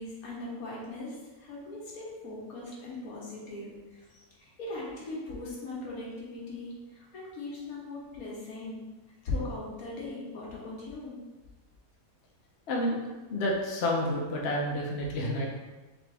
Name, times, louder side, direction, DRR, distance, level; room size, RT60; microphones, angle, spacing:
voice 1, 0.0-8.8 9.2-11.2, left 2 dB, 80° left, -5 dB, 1.6 m, -39 dB
voice 2, 13.3-15.5, left 1 dB, 55° left, -2 dB, 0.9 m, -29 dB
3.9 x 3.5 x 3.4 m, 1.2 s
omnidirectional pair, 1.5 m